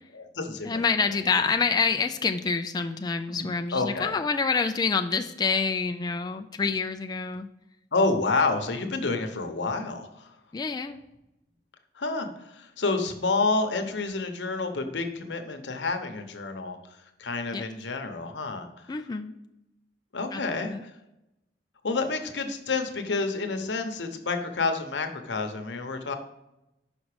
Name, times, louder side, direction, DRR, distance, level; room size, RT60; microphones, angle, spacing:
voice 1, 0.1-0.8 3.4-4.2 7.9-10.3 12.0-16.8 17.2-18.9 20.1-20.9 21.8-26.2, left 3 dB, 85° left, 6 dB, 0.9 m, -29 dB
voice 2, 0.6-7.5 10.5-11.0 17.5-17.6 18.9-19.4 20.3-20.4 20.7-20.8, left 5 dB, 25° left, 6 dB, 0.3 m, -27 dB
5.9 x 5.3 x 4.8 m, 0.91 s
head